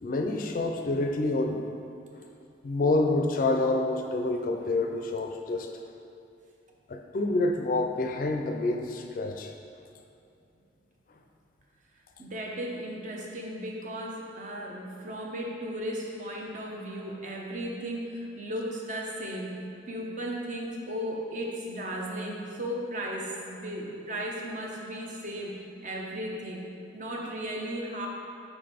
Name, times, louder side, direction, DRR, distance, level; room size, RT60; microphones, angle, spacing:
voice 1, 0.0-1.7 2.6-5.7 6.9-9.5, left 2 dB, 50° left, 3 dB, 0.4 m, -27 dB
voice 2, 12.2-19.6 19.9-26.7 26.9-28.1, equal, 45° right, -1 dB, 0.7 m, -35 dB
4.8 x 3.9 x 5.0 m, 2.6 s
head